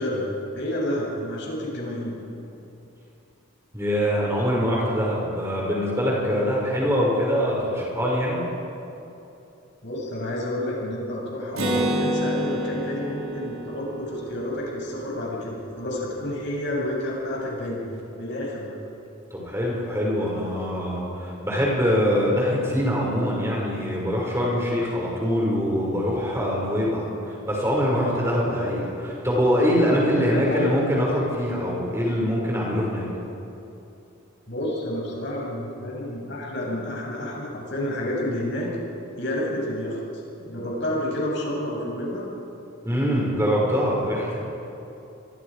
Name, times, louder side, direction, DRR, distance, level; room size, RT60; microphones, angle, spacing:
voice 1, 0.0-2.2 9.8-17.9 18.2-18.8 28.6-28.9 30.1-30.6 34.5-38.7 39.2-40.0 40.4-42.3, left 1 dB, 55° left, -3 dB, 7.8 m, -30 dB
voice 2, 3.7-8.4 19.3-28.9 29.2-33.1 42.8-44.4, equal, 10° right, -4 dB, 6.4 m, -23 dB
Acoustic guitar, 11.6-15.2, equal, 75° right, 4.5 m, -28 dB
27.5 x 24.0 x 5.2 m, 2.8 s
head